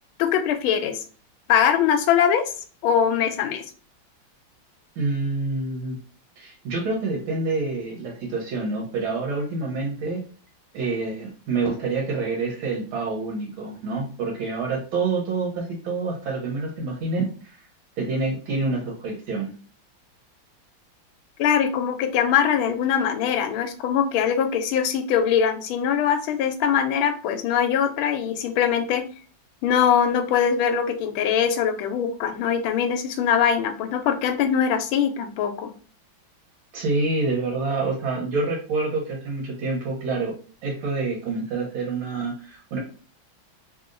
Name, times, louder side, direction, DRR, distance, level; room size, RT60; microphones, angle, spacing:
voice 1, 0.2-1.0 1.5-2.5 2.8-3.6 21.4-29.0 29.6-35.7, left 8 dB, 85° left, 7 dB, 1.4 m, -22 dB
voice 2, 5.0-6.0 6.4-10.2 10.7-17.6 18.0-19.5 36.7-40.3 40.6-42.8, right 3 dB, 80° right, -2 dB, 1.7 m, -27 dB
3.4 x 2.7 x 2.5 m, 0.39 s
omnidirectional pair, 2.2 m